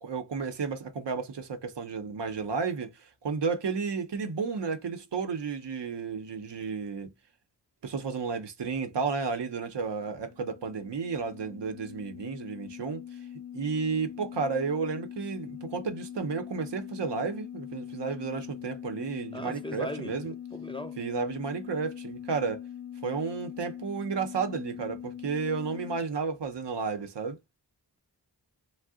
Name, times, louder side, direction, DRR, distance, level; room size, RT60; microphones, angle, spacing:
voice 1, 0.0-7.1 7.8-13.0 13.5-20.3 21.0-22.6 23.0-27.4, right 5 dB, 85° right, 0.7 m, -32 dB
sound 1, 9.8-26.0, left 10 dB, 70° left, 0.6 m, -42 dB
voice 2, 19.3-20.1 20.5-21.0, equal, 15° left, 0.4 m, -38 dB
2.6 x 2.1 x 3.5 m
wide cardioid pair, 50°, 41 cm